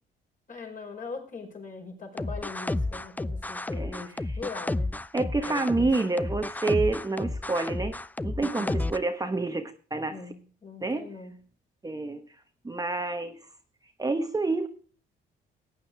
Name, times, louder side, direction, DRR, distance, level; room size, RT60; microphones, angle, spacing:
voice 1, 0.5-4.9 5.5-6.2 8.6-8.9 10.1-11.4, left 4 dB, 40° left, 2 dB, 5.0 m, -41 dB
sound 1, 2.2-9.0, left 2 dB, 10° left, 0.4 m, -31 dB
voice 2, 3.7-4.4 5.1-8.0 8.2-10.2 10.8-11.1 11.8-12.3 12.6-13.4 14.0-14.7, right 3 dB, 20° right, 6 dB, 1.1 m, -28 dB
15.5 x 9.3 x 3.4 m, 0.41 s
cardioid pair, 90°, 20 cm